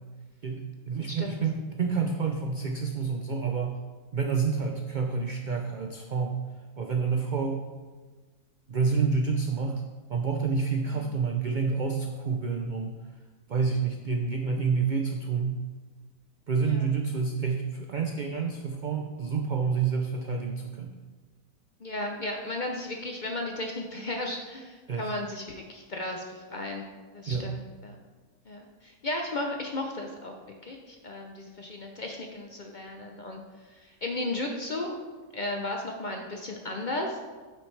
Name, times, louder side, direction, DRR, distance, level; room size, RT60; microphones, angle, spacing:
voice 1, 0.4-3.8 4.1-6.4 6.8-7.7 8.7-9.8 10.1-13.0 13.5-15.6 16.5-20.9 24.9-25.1 27.3-27.5, right 5 dB, 80° right, 3 dB, 0.4 m, -28 dB
voice 2, 1.0-1.4 10.8-11.1 16.6-16.8 21.8-28.0 28.5-30.3 30.7-33.4 33.7-35.0 35.3-37.2, left 2 dB, 50° left, 2 dB, 0.6 m, -35 dB
8.6 x 6.1 x 3.2 m, 1.4 s
omnidirectional pair, 1.5 m